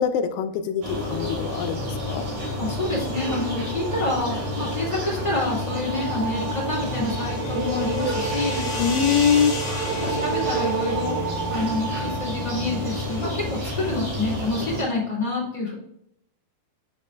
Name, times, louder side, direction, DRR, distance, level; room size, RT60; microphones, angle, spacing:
voice 1, 0.0-2.2 8.8-9.5, left 7 dB, 80° left, 8 dB, 2.6 m, -23 dB
sound 1, 0.8-14.8, left 1 dB, 55° right, 4.4 m, -30 dB
sound 2, 2.0-13.3, right 6 dB, 80° right, 2.8 m, -33 dB
voice 2, 2.6-8.7 10.0-11.2 11.5-15.7, left 2 dB, 15° left, -5 dB, 1.7 m, -28 dB
sound 3, 6.5-11.9, left 3 dB, 40° left, 2.2 m, -36 dB
9.7 x 5.2 x 2.3 m, 0.73 s
omnidirectional pair, 5.2 m